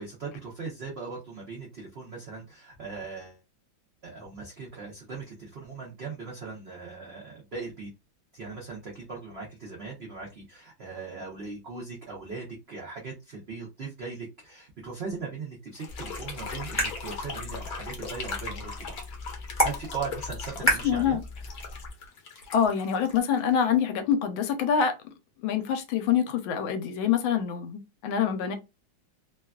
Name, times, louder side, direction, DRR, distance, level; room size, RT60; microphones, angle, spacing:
voice 1, 0.0-3.4 4.0-7.9 8.3-18.9 19.6-21.2, right 4 dB, 85° right, 0.5 m, -39 dB
sound 1, 15.7-23.8, left 4 dB, 60° left, 1.0 m, -39 dB
sound 2, 15.9-21.9, right 1 dB, 15° right, 0.4 m, -33 dB
voice 2, 20.8-21.2 22.5-24.9 25.4-28.5, left 8 dB, 85° left, 1.4 m, -25 dB
3.3 x 2.3 x 2.2 m
omnidirectional pair, 2.2 m